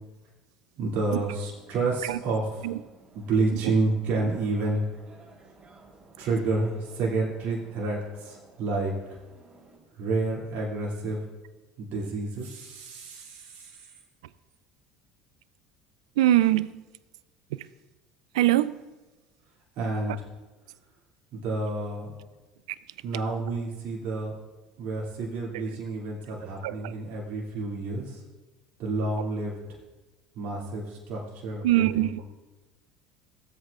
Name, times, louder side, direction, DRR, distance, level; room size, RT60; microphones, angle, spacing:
voice 1, 0.8-2.4 3.1-4.9 6.2-8.9 10.0-11.2 11.8-13.8 19.8-20.2 21.3-22.1 23.0-24.3 24.8-28.2 28.8-29.5 30.3-32.2, right 3 dB, 60° right, -4 dB, 2.6 m, -29 dB
sound 1, 1.1-9.8, right 3 dB, 30° right, 3.5 m, -55 dB
voice 2, 16.2-16.7 17.5-17.7 18.3-18.8 20.1-20.2 22.7-22.8 25.5-25.6 26.4-27.0 29.2-29.3 31.6-32.2, right 14 dB, 80° right, 17 dB, 0.3 m, -24 dB
16.5 x 8.0 x 2.5 m, 1.2 s
hypercardioid pair, 75°, 3 cm